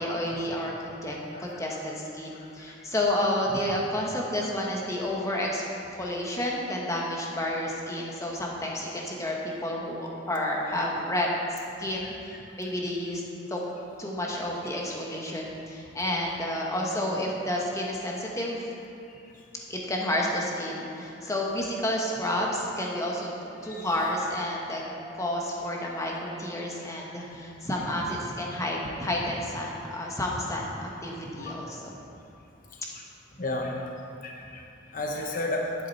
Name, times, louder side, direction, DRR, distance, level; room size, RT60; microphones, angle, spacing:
voice 1, 0.0-5.6 6.0-13.2 13.5-13.7 14.0-18.7 19.7-24.8 25.2-31.9, left 1 dB, 15° left, -2 dB, 1.3 m, -30 dB
sound 1, 21.5-22.0 22.5-23.0 23.5-24.0 24.5-25.0 25.5-26.0, right 6 dB, 40° right, 2.0 m, -48 dB
voice 2, 33.4-33.8 34.2-34.6 34.9-35.6, left 2 dB, 45° left, 0 dB, 0.9 m, -32 dB
11.5 x 7.5 x 4.2 m, 2.7 s
head